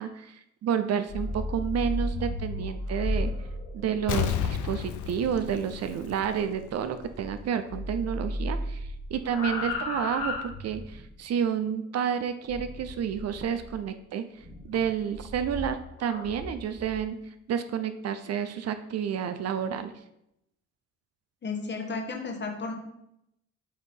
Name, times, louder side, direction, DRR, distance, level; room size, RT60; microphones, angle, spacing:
voice 1, 0.0-3.3 3.7-17.2 17.5-19.9, right 8 dB, 55° right, 10 dB, 0.5 m, -30 dB
sound 1, 1.0-7.4 7.7-11.1 12.5-13.7 14.4-17.0, left 1 dB, 55° left, 1.9 m, -35 dB
Explosion, 4.1-6.7 7.0-7.1, left 9 dB, 75° left, 0.6 m, -31 dB
voice 2, 21.4-22.7, left 4 dB, 35° left, 4 dB, 1.1 m, -33 dB
6.6 x 2.7 x 5.3 m, 0.81 s
cardioid pair, 90°, 30 cm